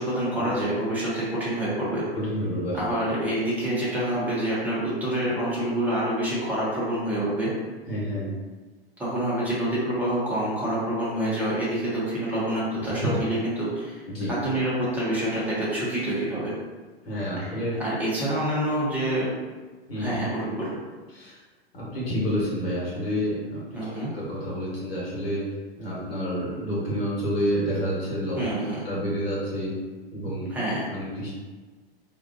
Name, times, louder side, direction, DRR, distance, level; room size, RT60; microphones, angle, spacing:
voice 1, 0.0-2.0 2.7-7.5 9.0-14.0 14.3-16.5 17.4-19.3 19.9-20.7 23.7-24.1 28.4-28.8 30.5-30.9, right 1 dB, 5° right, -8 dB, 0.8 m, -27 dB
voice 2, 2.1-2.8 7.9-8.3 13.0-13.1 14.1-14.3 17.1-17.8 19.9-20.2 21.1-21.4 21.7-23.6 23.9-25.4 25.8-28.4 28.8-29.8 30.1-30.5 30.9-31.3, equal, 70° left, -6 dB, 1.3 m, -29 dB
2.5 x 2.3 x 2.6 m, 1.3 s
figure-of-eight pair, 100°, 31 cm